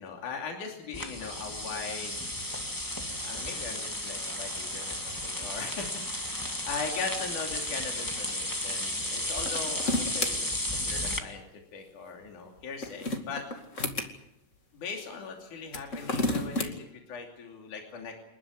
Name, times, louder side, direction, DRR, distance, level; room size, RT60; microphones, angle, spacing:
voice 1, 0.0-2.2 3.2-10.5 10.8-11.5 11.7-13.4 14.7-18.1, left 5 dB, 70° left, 2 dB, 4.3 m, -39 dB
sound 1, 0.9-11.2, left 1 dB, 10° left, 1.5 m, -34 dB
sound 2, 9.3-10.3 12.6-14.1 15.6-16.7, left 2 dB, 25° left, 2.3 m, -31 dB
29.0 x 12.5 x 10.0 m, 0.85 s
omnidirectional pair, 3.7 m